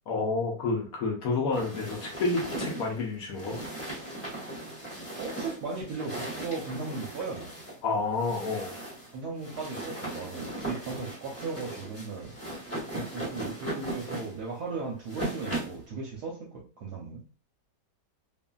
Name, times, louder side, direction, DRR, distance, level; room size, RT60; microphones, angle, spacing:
voice 1, 0.1-3.6 7.8-8.7, left 3 dB, 65° left, 0 dB, 1.0 m, -29 dB
sound 1, 1.5-15.8, right 1 dB, 10° left, 1.0 m, -38 dB
voice 2, 5.2-7.5 9.1-12.4 12.9-17.2, right 4 dB, 70° right, -2 dB, 1.1 m, -37 dB
2.7 x 2.5 x 2.2 m, 0.36 s
omnidirectional pair, 1.9 m